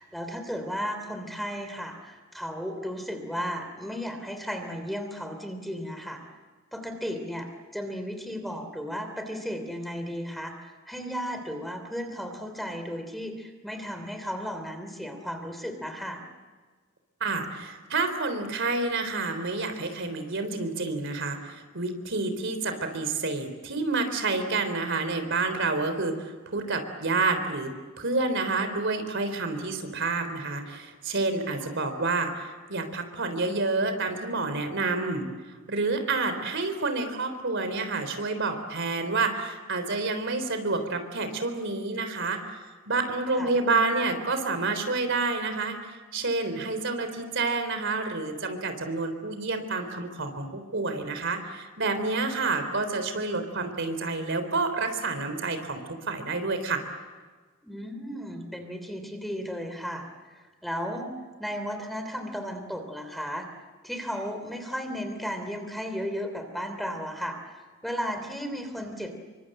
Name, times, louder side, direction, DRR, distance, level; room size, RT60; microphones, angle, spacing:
voice 1, 0.0-6.2 6.7-16.2 31.6-31.7 43.3-43.6 57.6-61.1 61.4-63.4 63.8-69.3, equal, ahead, 6 dB, 3.1 m, -35 dB
voice 2, 17.2-35.3 35.7-42.6 42.9-56.8, right 3 dB, 60° right, 8 dB, 3.7 m, -29 dB
27.5 x 24.5 x 7.8 m, 1.4 s
head